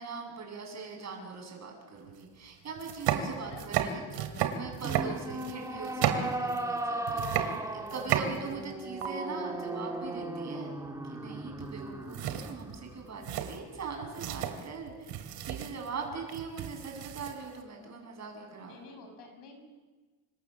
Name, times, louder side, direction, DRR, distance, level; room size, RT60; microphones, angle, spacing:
voice 1, 0.0-10.7 11.0-18.8, right 4 dB, 40° right, 2 dB, 7.8 m, -41 dB
sound 1, 2.1-2.2 2.7-6.8 7.1-8.7 9.0-9.1 11.6-11.9 12.1-17.6, right 9 dB, 85° right, 3.0 m, -33 dB
voice 2, 3.4-3.7 18.6-19.6, left 3 dB, 75° left, 5 dB, 7.0 m, -50 dB
sound 2, 4.8-14.2, right 2 dB, 10° right, 2.1 m, -37 dB
29.0 x 26.0 x 7.2 m, 1.3 s
cardioid pair, 140°, 41 cm